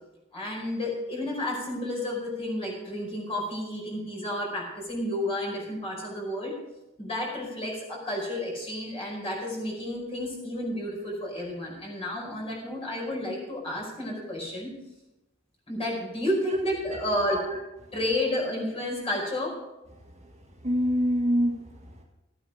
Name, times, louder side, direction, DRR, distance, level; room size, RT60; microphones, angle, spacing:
voice 1, 0.3-6.5 7.0-14.7 15.7-17.4 17.9-19.6, left 1 dB, 30° left, -2 dB, 5.0 m, -31 dB
voice 2, 17.3-17.6 20.6-22.0, equal, 35° right, -1 dB, 1.7 m, -26 dB
14.0 x 8.9 x 5.0 m, 0.96 s
head